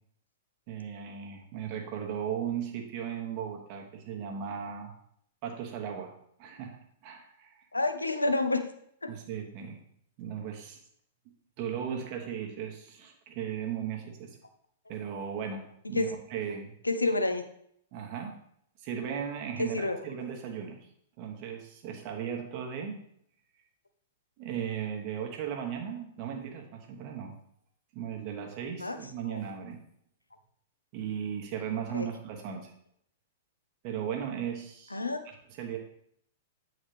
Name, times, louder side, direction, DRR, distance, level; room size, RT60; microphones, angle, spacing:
voice 1, 0.7-4.9 5.4-6.1 6.4-6.8 7.0-7.7 9.1-9.8 10.2-10.8 11.6-14.4 14.9-16.7 17.9-18.4 18.8-20.8 21.2-23.0 24.4-27.3 27.9-29.8 30.9-32.7 33.8-35.0 35.2-35.8, right 8 dB, 40° right, 2 dB, 1.2 m, -36 dB
voice 2, 7.7-8.6 9.0-9.1 15.9-16.1 16.8-17.4 19.6-20.0 28.8-29.0 29.3-29.4 31.9-32.1 34.9-35.2, left 2 dB, 80° left, 8 dB, 0.6 m, -28 dB
8.6 x 3.9 x 3.3 m, 0.70 s
figure-of-eight pair, 105°, 0 cm